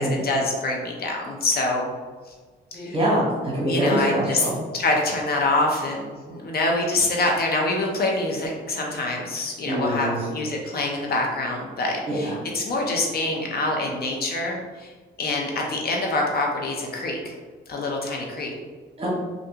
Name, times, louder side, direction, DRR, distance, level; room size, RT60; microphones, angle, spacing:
voice 1, 0.0-1.9 2.7-2.9 3.7-4.5 4.7-14.9 15.2-17.3 17.7-18.5, left 2 dB, 50° left, 0 dB, 0.6 m, -25 dB
voice 2, 2.7-4.6 9.7-10.2 12.1-12.3 19.0-19.1, equal, 30° right, -5 dB, 1.2 m, -24 dB
3.3 x 2.5 x 2.8 m, 1.4 s
cardioid pair, 90°, 20 cm